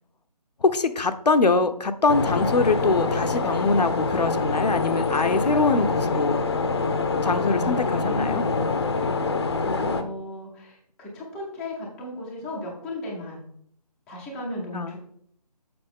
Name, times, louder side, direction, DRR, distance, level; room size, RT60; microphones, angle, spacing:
voice 1, 0.6-6.4 7.2-8.4 14.7-15.0, left 3 dB, 75° left, 8 dB, 0.8 m, -23 dB
sound 1, 2.1-10.0, left 4 dB, 40° left, 0.7 m, -25 dB
voice 2, 7.6-8.6 8.9-9.2 9.6-13.4 14.1-15.0, left 1 dB, 5° left, -5 dB, 0.5 m, -35 dB
6.9 x 6.0 x 3.6 m, 0.67 s
figure-of-eight pair, 155°, 21 cm